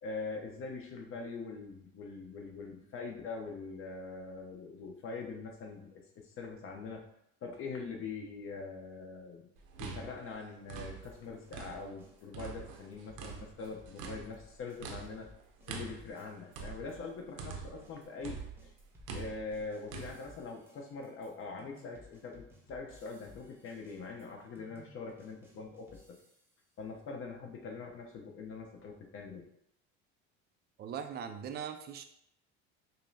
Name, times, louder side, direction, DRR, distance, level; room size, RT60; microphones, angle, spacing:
voice 1, 0.0-7.1 7.4-9.5 9.8-15.3 15.7-18.7 19.1-26.0 26.8-29.4, left 4 dB, 45° left, 2 dB, 0.8 m, -43 dB
sound 1, 9.6-12.0 12.3-17.9 18.2-20.1, right 5 dB, 75° right, 0.7 m, -45 dB
sound 2, 11.0-16.6 16.9-26.6, left 2 dB, 10° right, 0.7 m, -60 dB
voice 2, 30.8-32.0, right 8 dB, 35° right, 8 dB, 0.4 m, -40 dB
5.3 x 2.1 x 2.7 m, 0.74 s
supercardioid pair, 115°, 30 cm